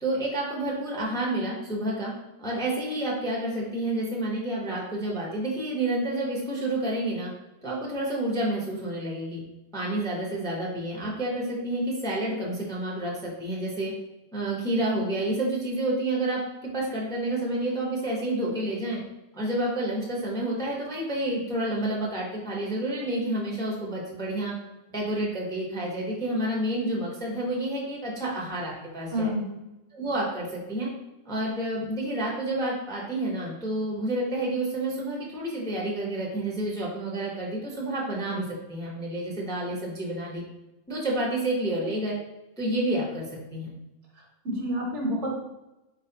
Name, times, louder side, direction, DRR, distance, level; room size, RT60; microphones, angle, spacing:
voice 1, 0.0-2.1 2.4-7.3 7.6-9.4 9.7-13.9 14.3-19.0 19.3-24.5 24.9-29.3 29.9-30.9 31.3-40.4 40.9-42.2 42.6-43.3 43.5-43.7, right 1 dB, 5° left, -3 dB, 0.7 m, -29 dB
voice 2, 29.1-29.5 44.4-45.3, equal, 65° right, -1 dB, 1.3 m, -28 dB
4.5 x 3.9 x 2.8 m, 0.98 s
omnidirectional pair, 1.3 m